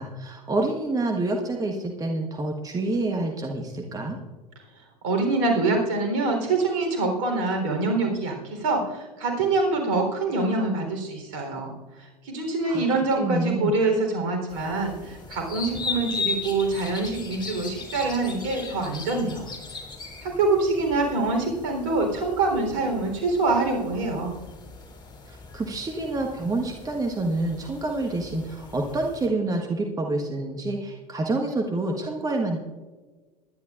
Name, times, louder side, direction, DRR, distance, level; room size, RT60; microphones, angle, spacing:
voice 1, 0.0-4.2 12.6-12.8 13.1-13.7 25.3-32.6, right 2 dB, 20° right, 3 dB, 1.4 m, -27 dB
voice 2, 5.0-11.7 12.0-19.5 20.2-24.3, right 3 dB, 55° right, 3 dB, 3.8 m, -25 dB
sound 1, 14.5-29.3, left 4 dB, 25° left, 3.2 m, -38 dB
21.5 x 11.0 x 2.5 m, 1.3 s
figure-of-eight pair, 75°, 20 cm